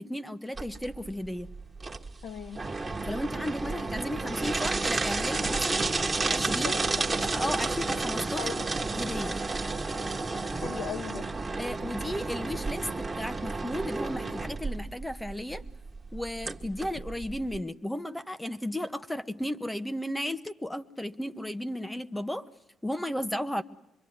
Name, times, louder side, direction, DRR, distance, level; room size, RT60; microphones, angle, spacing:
voice 1, 0.0-1.5 3.0-5.9 6.3-6.8 7.2-8.4 8.9-9.4 11.6-15.6 16.1-22.5 22.8-23.6, left 1 dB, 5° left, 11 dB, 1.1 m, -34 dB
sound 1, 0.6-17.6, right 3 dB, 25° right, 1.7 m, -31 dB
voice 2, 2.2-2.6 6.6-7.2 8.4-8.7 10.5-11.3, left 7 dB, 80° left, 5 dB, 1.9 m, -38 dB
25.0 x 23.0 x 9.5 m, 0.81 s
cardioid pair, 90°, 0 cm